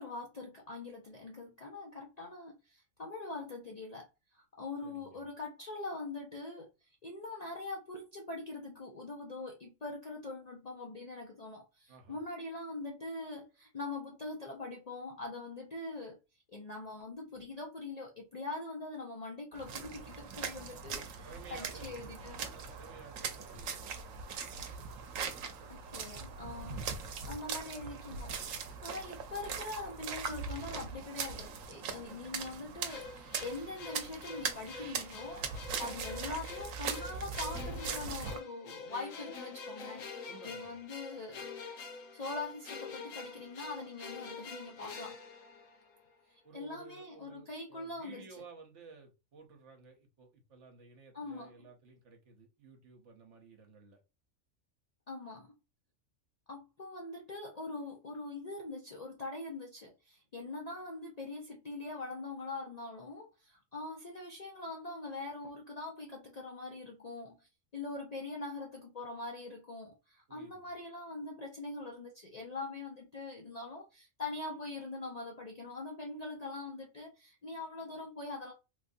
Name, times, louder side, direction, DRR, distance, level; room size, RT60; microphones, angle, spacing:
voice 1, 0.0-16.2 16.5-22.4 25.7-26.9 27.3-28.3 28.8-41.5 42.1-45.2 46.3-48.2 51.1-51.7 55.1-55.5 56.5-78.5, left 2 dB, 50° left, 0.5 m, -43 dB
voice 2, 4.8-5.2 11.9-12.2 21.2-24.4 40.3-40.8 46.4-54.0 70.3-70.7, right 4 dB, 65° right, 1.1 m, -55 dB
sound 1, 19.6-38.4, right 5 dB, 85° right, 1.0 m, -41 dB
Impending Strings of the Macabre, 32.9-46.1, left 4 dB, 85° left, 1.1 m, -46 dB
3.2 x 2.5 x 2.5 m
omnidirectional pair, 1.3 m